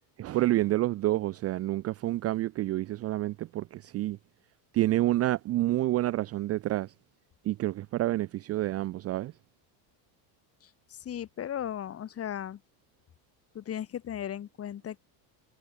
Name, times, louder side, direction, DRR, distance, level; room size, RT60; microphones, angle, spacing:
voice 1, 0.2-4.2 4.7-6.9 7.4-9.3, right 15 dB, 30° right, 0.6 m, -28 dB
voice 2, 10.6-12.6 13.5-15.0, left 10 dB, 30° left, 3.4 m, -36 dB
cardioid pair, 155°, 46 cm